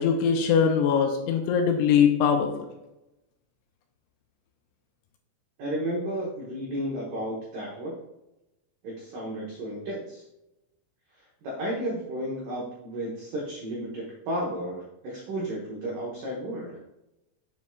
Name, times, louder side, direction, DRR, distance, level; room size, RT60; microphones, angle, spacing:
voice 1, 0.0-2.5, left 7 dB, 90° left, 3 dB, 2.6 m, -22 dB
voice 2, 5.6-7.9 8.8-10.2 11.4-16.8, right 1 dB, 90° right, -4 dB, 1.8 m, -33 dB
7.8 x 7.4 x 2.4 m, 0.92 s
omnidirectional pair, 5.9 m